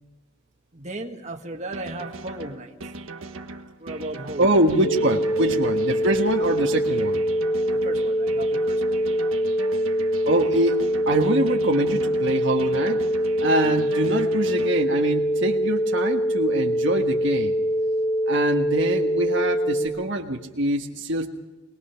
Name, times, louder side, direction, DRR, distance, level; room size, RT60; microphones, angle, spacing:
voice 1, 0.7-2.8 3.8-4.9 5.4-5.6 7.8-8.8, right 2 dB, 35° right, 2 dB, 1.7 m, -35 dB
sound 1, 1.7-14.7, right 2 dB, 75° right, 1.5 m, -38 dB
voice 2, 4.4-7.2 10.2-13.0 13.4-17.5 18.3-21.3, right 1 dB, 60° right, 2 dB, 1.5 m, -24 dB
sound 2, 4.8-19.9, equal, 70° left, 3.2 m, -24 dB
22.5 x 20.5 x 5.8 m, 1.2 s
head